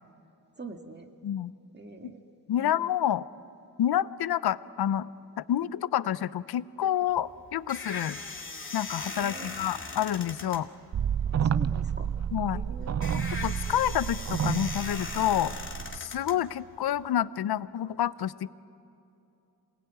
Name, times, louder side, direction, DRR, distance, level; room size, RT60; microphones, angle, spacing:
voice 1, 0.6-1.1 1.7-2.2 2.6-2.7 9.2-9.5 11.2-12.1 12.5-12.9, right 3 dB, 25° right, 5 dB, 1.9 m, -44 dB
voice 2, 2.5-3.3 3.8-5.1 5.4-8.2 8.7-10.7 12.3-12.6 13.1-15.5 15.9-18.3, left 11 dB, 75° left, 17 dB, 0.6 m, -28 dB
sound 1, 7.1-17.0, left 3 dB, 30° left, 2.5 m, -40 dB
sound 2, 10.9-16.0, right 8 dB, 45° right, 0.5 m, -30 dB
27.5 x 19.5 x 9.3 m, 2.8 s
wide cardioid pair, 95°, 38 cm